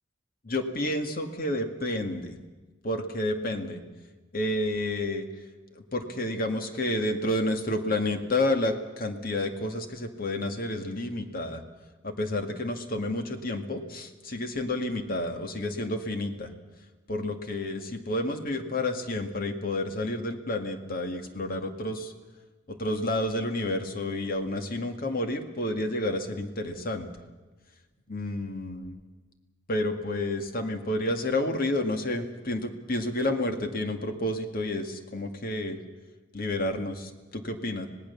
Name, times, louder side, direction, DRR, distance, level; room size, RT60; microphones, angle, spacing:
voice 1, 0.4-2.4 2.8-3.8 4.3-5.2 5.9-11.6 12.0-16.5 17.1-22.1 22.7-27.1 28.1-29.0 29.7-35.8 36.3-37.9, left 1 dB, 50° left, 6 dB, 2.1 m, -30 dB
25.5 x 18.5 x 7.1 m, 1.2 s
head